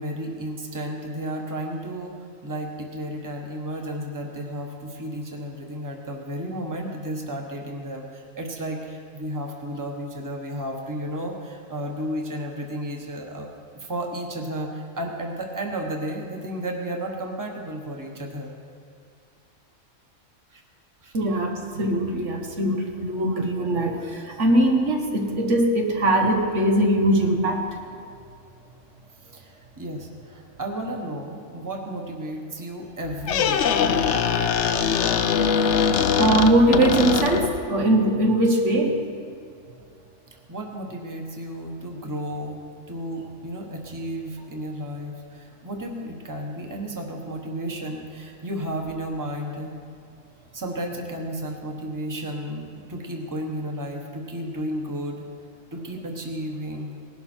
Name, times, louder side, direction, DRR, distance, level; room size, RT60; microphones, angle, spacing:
voice 1, 0.0-13.5 13.7-18.5 20.5-20.6 21.0-21.1 29.3-33.7 40.5-49.7 50.5-55.3 55.7-57.0, right 1 dB, 15° right, 1 dB, 1.3 m, -33 dB
voice 2, 21.1-27.7 36.2-39.0, right 1 dB, 70° right, 2 dB, 1.6 m, -21 dB
Squeak, 33.0-37.7, left 7 dB, 65° left, 0.9 m, -22 dB
18.5 x 11.5 x 4.5 m, 2.3 s
omnidirectional pair, 1.3 m